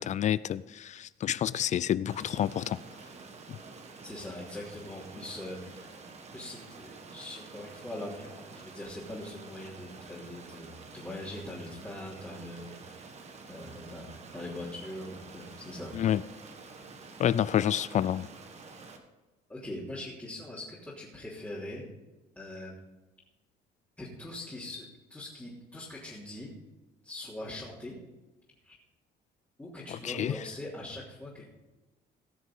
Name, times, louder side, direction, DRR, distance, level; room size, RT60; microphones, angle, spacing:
voice 1, 0.0-2.8 15.9-16.2 17.2-18.3 29.9-30.4, left 10 dB, 45° left, 0.4 m, -28 dB
Stream, 2.1-19.0, right 4 dB, 40° right, 1.7 m, -48 dB
voice 2, 4.0-6.0 6.3-13.2 13.5-15.9 17.0-17.1 19.5-21.9 22.3-22.7 24.0-26.5 27.0-28.0 28.6-28.7 29.6-31.4, left 1 dB, 10° left, 3.2 m, -42 dB
17.5 x 6.4 x 5.5 m
cardioid pair, 110°, 17 cm